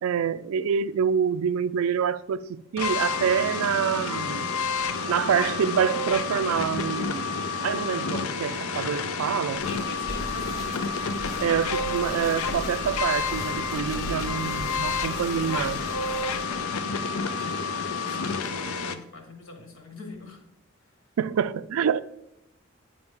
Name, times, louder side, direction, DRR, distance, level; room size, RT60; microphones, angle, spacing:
voice 1, 0.0-4.5 5.1-9.6 11.4-15.8 21.2-22.0, right 7 dB, 85° right, 0.3 m, -26 dB
sound 1, 2.8-19.0, left 4 dB, 90° left, 0.5 m, -29 dB
sound 2, 9.5-16.6, equal, 15° left, 0.8 m, -40 dB
voice 2, 9.6-10.8 17.3-20.4, left 2 dB, 75° left, 1.6 m, -43 dB
9.2 x 5.2 x 3.6 m
head